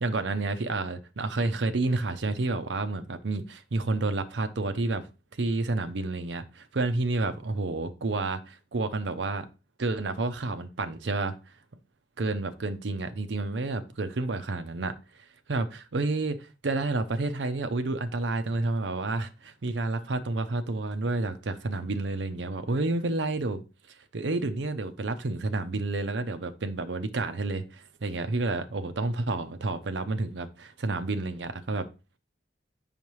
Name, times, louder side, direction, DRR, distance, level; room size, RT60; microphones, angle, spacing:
voice 1, 0.0-5.1 5.4-9.5 9.8-11.4 12.2-15.0 15.5-23.6 24.1-31.9, right 2 dB, 85° right, 0.7 m, -30 dB
7.0 x 5.7 x 3.1 m
head